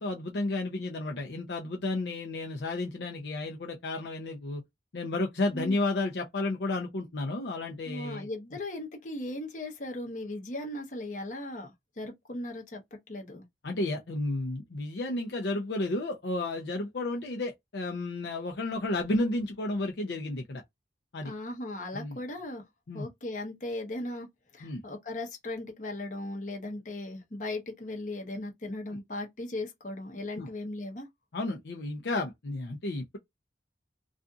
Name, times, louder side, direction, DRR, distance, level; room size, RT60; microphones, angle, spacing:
voice 1, 0.0-4.6 4.9-8.3 13.6-20.6 21.1-21.3 21.9-22.2 22.9-23.1 24.6-24.8 30.4-30.5 31.3-33.2, left 2 dB, 70° left, 0.6 m, -32 dB
voice 2, 7.9-13.4 21.2-22.6 22.9-24.3 24.5-31.1, left 2 dB, 45° left, 0.9 m, -37 dB
2.5 x 2.4 x 2.5 m
head